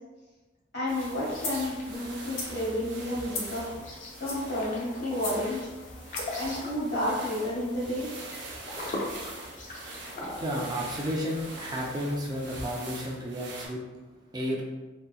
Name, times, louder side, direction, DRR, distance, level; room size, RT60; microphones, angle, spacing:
voice 1, 0.7-5.7 6.4-8.1, left 1 dB, 60° left, -6 dB, 1.1 m, -31 dB
sound 1, 0.9-12.9, left 1 dB, 40° left, 0.4 m, -42 dB
sound 2, 0.9-13.7, right 2 dB, 60° right, 0.6 m, -44 dB
sound 3, 1.4-1.7 2.2-2.6 3.3-3.6 4.1-4.5 5.1-5.4 6.1-6.4, left 3 dB, 90° left, 0.6 m, -36 dB
voice 2, 10.0-13.8 14.3-14.6, equal, 20° right, -2 dB, 0.3 m, -32 dB
2.6 x 2.5 x 2.3 m, 1.2 s
head